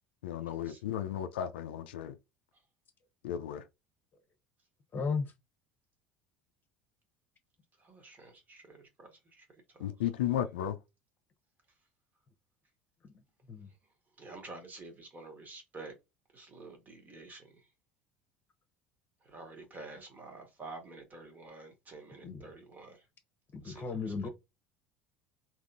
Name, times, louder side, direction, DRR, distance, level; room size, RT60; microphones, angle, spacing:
voice 1, 0.2-2.2 3.2-3.6 9.8-10.8, left 10 dB, 70° left, 0.4 m, -34 dB
voice 2, 4.9-5.3 13.5-13.7 22.2-22.5 23.5-24.3, left 5 dB, 35° left, 0.9 m, -35 dB
voice 3, 7.8-9.4 9.8-9.9 14.2-15.9 16.3-17.5 19.3-23.0 23.6-23.8, right 3 dB, 30° right, 1.5 m, -49 dB
3.6 x 2.8 x 2.5 m
figure-of-eight pair, 65°, 6 cm